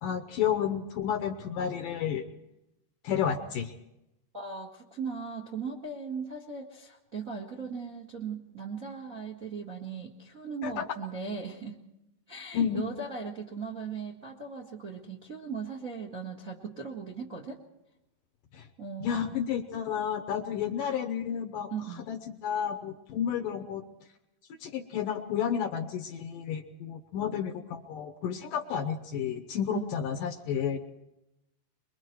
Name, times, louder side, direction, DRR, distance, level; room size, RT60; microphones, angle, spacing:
voice 1, 0.0-2.2 3.0-3.7 10.6-10.9 12.5-12.8 18.5-18.7 19.0-21.7 22.1-23.8 24.6-30.8, left 8 dB, 70° left, 7 dB, 2.3 m, -31 dB
voice 2, 4.3-11.8 12.3-17.6 18.8-19.4 21.7-22.1 29.7-30.0, right 5 dB, 40° right, -1 dB, 1.1 m, -38 dB
24.5 x 23.0 x 4.6 m, 0.89 s
omnidirectional pair, 4.7 m